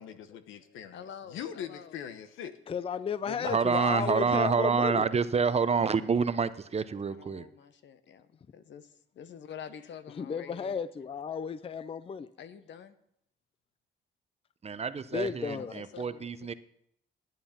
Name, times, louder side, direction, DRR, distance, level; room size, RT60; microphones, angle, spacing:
voice 1, 0.0-1.0 1.3-2.5 3.3-4.2, left 8 dB, 85° left, 10 dB, 1.0 m, -41 dB
voice 2, 0.9-2.0 7.1-10.8 12.4-12.9 15.6-16.5, left 8 dB, 65° left, 11 dB, 1.0 m, -48 dB
voice 3, 2.7-5.1 10.2-12.3 15.1-15.8, left 6 dB, 30° left, 16 dB, 0.5 m, -33 dB
voice 4, 3.4-7.5 14.6-16.5, right 5 dB, 30° right, 13 dB, 0.7 m, -28 dB
11.5 x 9.2 x 5.8 m, 0.74 s
cardioid pair, 90°, 20 cm